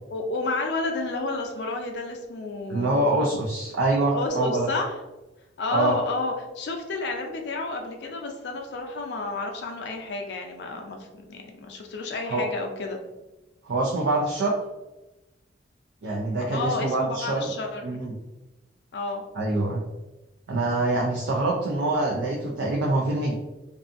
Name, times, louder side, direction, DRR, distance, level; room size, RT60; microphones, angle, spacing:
voice 1, 0.1-3.1 4.1-4.9 5.6-13.0 16.5-18.0 18.9-19.2, left 3 dB, 65° left, 2 dB, 0.4 m, -31 dB
voice 2, 2.7-4.7 5.7-5.9 12.3-12.4 13.6-14.5 16.0-17.5 17.8-18.1 19.3-19.8 20.5-23.3, right 2 dB, 80° right, -2 dB, 0.4 m, -25 dB
2.6 x 2.3 x 2.5 m, 1.0 s
head